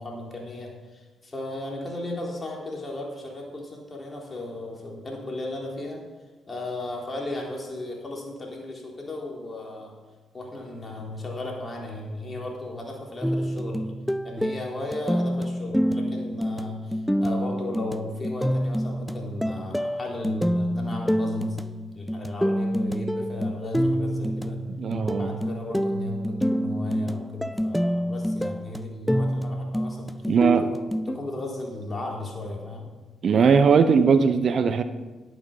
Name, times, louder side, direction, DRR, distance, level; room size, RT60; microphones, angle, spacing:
voice 1, 0.0-6.0 6.5-9.9 10.3-13.9 14.2-21.6 21.9-24.7 25.0-30.1 31.1-32.9, left 2 dB, 30° left, -1 dB, 3.8 m, -35 dB
sound 1, 13.2-31.2, equal, 5° left, 0.5 m, -27 dB
voice 2, 24.8-25.3 30.3-30.7 33.2-34.8, right 6 dB, 55° right, 11 dB, 0.8 m, -19 dB
11.0 x 8.9 x 5.6 m, 1.3 s
hypercardioid pair, 45°, 0 cm